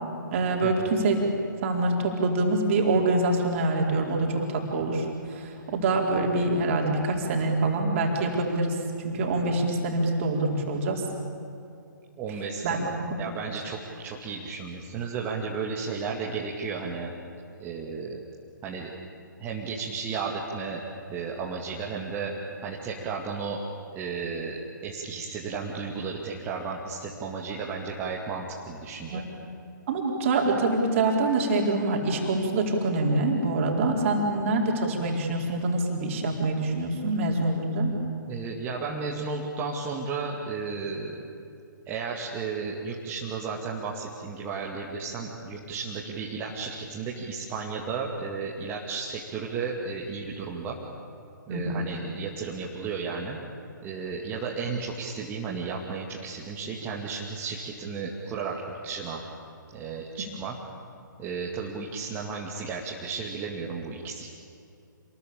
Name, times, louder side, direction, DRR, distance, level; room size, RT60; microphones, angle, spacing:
voice 1, 0.3-1.2 1.6-8.8 9.0-11.0 12.6-13.1 29.1-29.3 29.9-37.9 51.5-51.9, right 2 dB, 40° right, 0 dB, 4.3 m, -25 dB
voice 2, 12.2-17.1 17.6-18.2 18.6-18.9 19.4-20.8 21.1-22.3 22.6-23.6 23.9-29.2 38.3-41.2 41.9-50.8 51.5-53.4 53.8-59.2 59.7-60.6 61.2-64.3, right 5 dB, 20° right, -2 dB, 2.3 m, -33 dB
27.5 x 21.5 x 8.7 m, 2.6 s
figure-of-eight pair, 130°, 11 cm